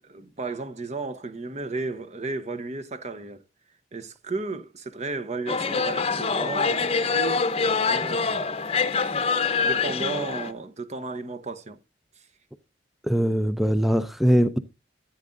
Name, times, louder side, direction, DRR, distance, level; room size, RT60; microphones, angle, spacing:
voice 1, 0.0-3.4 3.9-8.4 9.6-11.8, right 3 dB, 40° right, 0.8 m, -34 dB
sound 1, 5.5-10.5, left 4 dB, 35° left, 0.8 m, -25 dB
voice 2, 13.1-14.6, equal, ahead, 0.5 m, -21 dB
14.0 x 8.6 x 2.5 m
head